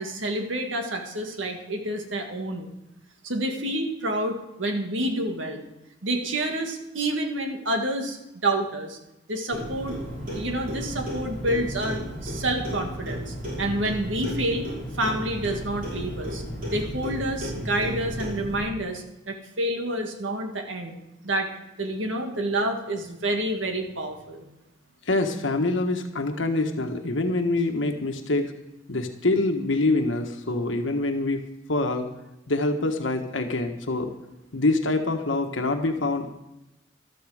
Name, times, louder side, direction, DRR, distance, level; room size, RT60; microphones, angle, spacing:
voice 1, 0.0-2.7 3.2-5.6 6.0-9.0 9.3-10.0 10.3-14.7 15.0-16.4 16.7-21.0 21.2-21.5 21.8-24.4, right 1 dB, 85° right, 4 dB, 1.9 m, -28 dB
Clock, 9.5-18.6, equal, 45° right, 5.6 m, -33 dB
voice 2, 25.1-28.5 28.9-31.4 31.7-32.1 32.5-34.1 34.5-36.3, left 2 dB, 80° left, 4 dB, 1.4 m, -25 dB
13.5 x 13.0 x 4.9 m, 0.92 s
head